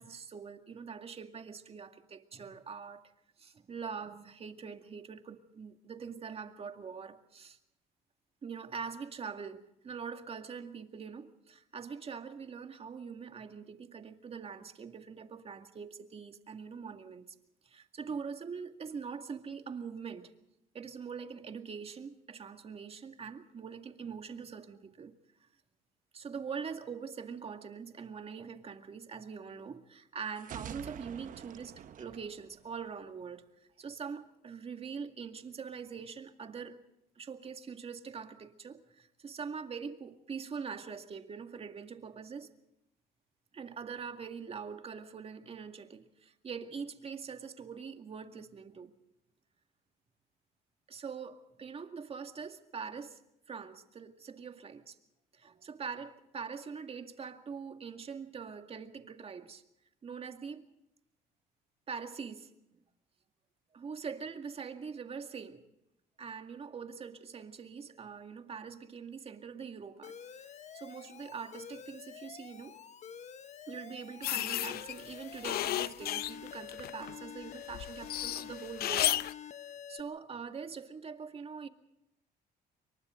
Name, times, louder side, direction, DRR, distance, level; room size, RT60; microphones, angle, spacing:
voice 1, 0.0-3.1 3.4-7.6 8.4-17.3 17.6-20.3 20.7-25.2 26.1-33.4 33.8-36.8 37.2-42.5 43.5-48.9 50.9-53.2 53.5-55.0 55.3-59.6 60.0-60.7 61.9-62.5 63.7-65.6 66.2-72.8 73.7-81.7, right 6 dB, 35° right, 2.1 m, -43 dB
sound 1, 30.4-33.2, right 9 dB, 50° right, 1.0 m, -47 dB
Alarm, 70.0-80.0, left 8 dB, 45° left, 1.2 m, -48 dB
sound 2, 74.2-77.1 77.5-79.3, left 13 dB, 65° left, 0.7 m, -33 dB
28.5 x 24.0 x 3.8 m
cardioid pair, 110°, 17 cm